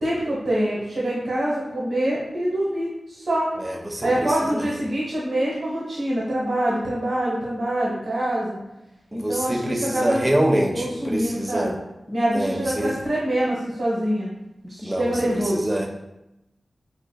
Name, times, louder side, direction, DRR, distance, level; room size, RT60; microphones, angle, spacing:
voice 1, 0.0-3.5 4.0-8.6 9.1-10.3 10.7-11.8 12.1-14.3 14.6-15.7, right 1 dB, 80° right, -7 dB, 1.1 m, -25 dB
voice 2, 3.6-4.7 9.1-11.7 12.3-13.0 14.8-15.2 15.4-15.9, right 1 dB, 25° right, 2 dB, 0.6 m, -25 dB
5.0 x 2.4 x 2.3 m, 0.93 s
cardioid pair, 45°, 0 cm